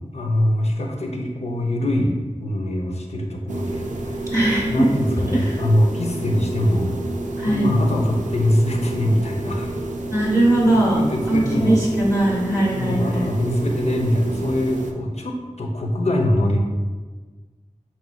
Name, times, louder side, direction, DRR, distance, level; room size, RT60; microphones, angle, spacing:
voice 1, 0.1-4.3 4.7-7.0 7.4-9.8 10.6-11.8 12.8-16.6, left 1 dB, 60° left, 0 dB, 0.6 m, -23 dB
sound 1, 3.5-14.9, right 2 dB, 75° right, 0.4 m, -29 dB
voice 2, 4.3-4.9 5.3-5.6 7.4-7.7 10.1-13.3, right 1 dB, 25° left, -5 dB, 1.1 m, -20 dB
5.2 x 3.0 x 2.3 m, 1.4 s
wide cardioid pair, 70°, 13 cm